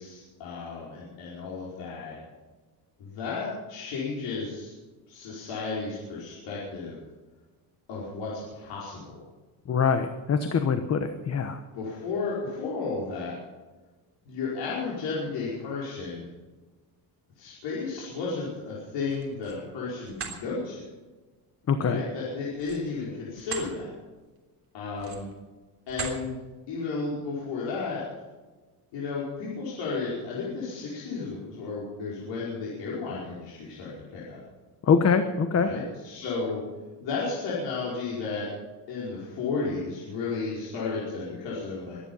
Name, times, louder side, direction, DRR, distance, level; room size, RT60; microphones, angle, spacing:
voice 1, 0.0-2.2 3.0-4.7 5.1-7.0 7.9-9.2 11.7-13.4 14.3-16.3 17.4-20.8 21.8-23.9 24.7-25.3 25.9-26.4 26.7-28.0 28.9-34.4 35.5-36.6 37.0-38.5 38.9-42.0, left 4 dB, 80° left, -6 dB, 5.2 m, -33 dB
voice 2, 9.7-11.6 21.7-22.0 34.9-35.7, left 6 dB, 35° left, 8 dB, 1.1 m, -24 dB
sound 1, 19.0-19.6 20.0-20.4 22.5-23.7 24.2-24.4 24.9-25.4 25.9-26.2, right 5 dB, 30° right, 3.4 m, -38 dB
23.5 x 10.0 x 5.6 m, 1.3 s
cardioid pair, 130°, 43 cm